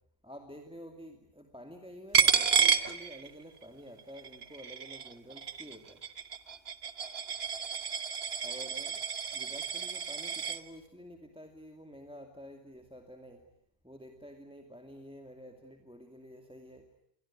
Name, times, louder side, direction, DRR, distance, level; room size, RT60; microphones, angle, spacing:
voice 1, 0.2-6.0 8.4-9.0 9.3-13.4 13.8-16.9, equal, 5° right, 5 dB, 2.4 m, -49 dB
Coin (dropping), 2.1-3.6 4.0-10.6, right 7 dB, 70° right, 1.5 m, -30 dB
28.5 x 24.0 x 8.7 m, 0.74 s
omnidirectional pair, 1.1 m